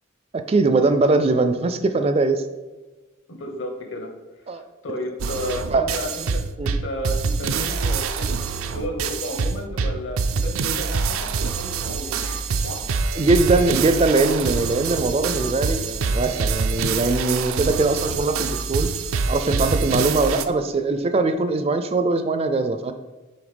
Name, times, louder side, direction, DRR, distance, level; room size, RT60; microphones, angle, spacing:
voice 1, 0.3-2.4 4.5-4.6 5.7-5.9 6.6-6.7 13.2-18.9 19.3-22.9, right 3 dB, 30° right, 10 dB, 0.3 m, -21 dB
voice 2, 3.3-4.1 4.4-13.2, left 1 dB, 65° left, 4 dB, 1.2 m, -33 dB
sound 1, 5.2-20.4, right 5 dB, 85° right, 0.5 m, -25 dB
7.0 x 3.4 x 5.1 m, 1.2 s
head